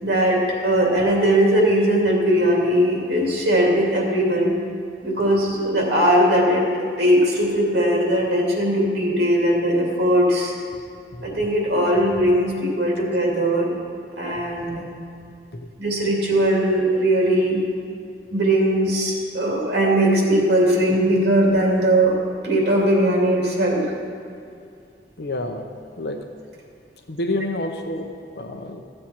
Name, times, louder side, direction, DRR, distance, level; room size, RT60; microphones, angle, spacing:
voice 1, 0.0-4.5 5.0-10.5 11.2-13.7 14.2-14.8 15.8-17.6 18.3-22.1 22.4-23.8, right 1 dB, 80° right, -2 dB, 2.6 m, -19 dB
voice 2, 25.2-25.7 26.0-26.3 27.1-28.8, left 1 dB, 70° left, 4 dB, 0.8 m, -29 dB
14.0 x 7.6 x 4.4 m, 2.4 s
head